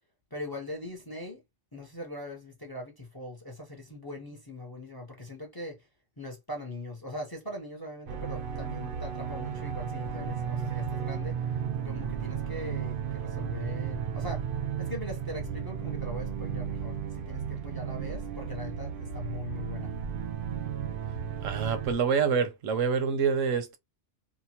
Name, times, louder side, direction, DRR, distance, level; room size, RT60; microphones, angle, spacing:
voice 1, 0.3-1.4 1.7-5.8 6.2-14.5 14.8-19.9, left 1 dB, 25° left, 0.6 m, -41 dB
sound 1, 8.1-21.9, right 7 dB, 60° right, 0.6 m, -34 dB
voice 2, 21.4-23.8, right 6 dB, 85° right, 1.1 m, -26 dB
2.9 x 2.1 x 2.8 m
omnidirectional pair, 1.3 m